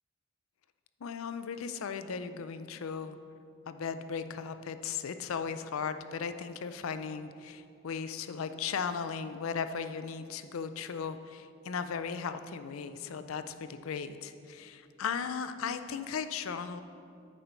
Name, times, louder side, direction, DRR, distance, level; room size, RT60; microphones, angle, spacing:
voice 1, 1.0-3.2 3.7-16.8, left 6 dB, 85° left, 10 dB, 0.4 m, -37 dB
9.0 x 4.4 x 5.6 m, 2.4 s
head